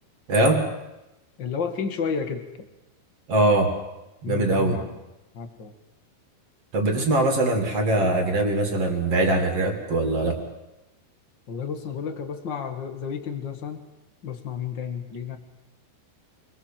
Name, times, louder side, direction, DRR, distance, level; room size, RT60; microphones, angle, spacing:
voice 1, 0.3-0.7 3.3-3.7 4.2-4.8 6.7-10.4, right 2 dB, 35° right, 4 dB, 3.4 m, -22 dB
voice 2, 1.4-2.5 4.2-4.8 5.3-5.7 7.0-7.1 11.5-13.9 14.2-15.4, left 6 dB, 45° left, 7 dB, 1.6 m, -31 dB
27.5 x 21.5 x 7.7 m, 0.97 s
omnidirectional pair, 5.1 m